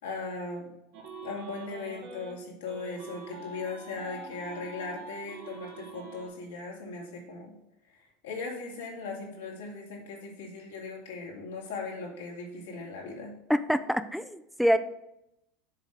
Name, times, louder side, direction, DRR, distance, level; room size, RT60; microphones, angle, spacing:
voice 1, 0.0-0.7 1.2-7.5 8.2-13.3, left 3 dB, 90° left, -2 dB, 2.5 m, -38 dB
sound 1, 0.9-2.3 2.7-6.3, right 3 dB, 70° right, 1.9 m, -44 dB
voice 2, 13.5-14.8, equal, ahead, 11 dB, 0.5 m, -26 dB
7.4 x 3.8 x 6.5 m, 0.84 s
supercardioid pair, 105°, 0 cm